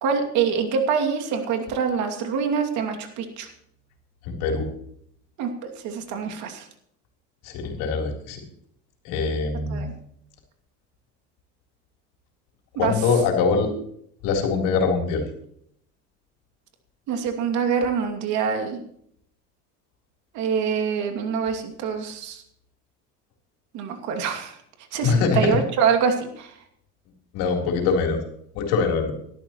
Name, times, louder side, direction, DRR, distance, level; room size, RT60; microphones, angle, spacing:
voice 1, 0.0-3.5 5.4-6.7 9.7-9.9 12.8-12.9 17.1-18.8 20.3-22.4 23.7-24.6 24.9-26.5, right 6 dB, 65° right, 4 dB, 2.6 m, -25 dB
voice 2, 4.3-4.7 7.4-8.4 9.0-9.9 12.8-13.7 14.2-15.2 25.0-25.6 27.3-28.2 28.6-29.1, left 5 dB, 80° left, 1 dB, 3.9 m, -23 dB
19.0 x 12.5 x 3.1 m, 0.67 s
cardioid pair, 130°, 31 cm